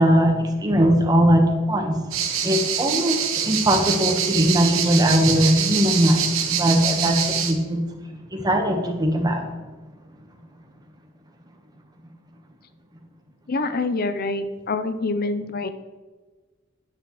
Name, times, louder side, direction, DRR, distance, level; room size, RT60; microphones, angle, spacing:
voice 1, 0.0-1.9 2.4-7.8 8.4-9.5, equal, 20° right, 3 dB, 1.1 m, -20 dB
sound 1, 2.1-7.5, right 8 dB, 90° right, 1.1 m, -25 dB
voice 2, 13.5-15.7, left 3 dB, 45° left, 10 dB, 0.6 m, -26 dB
9.6 x 8.9 x 3.1 m, 1.3 s
head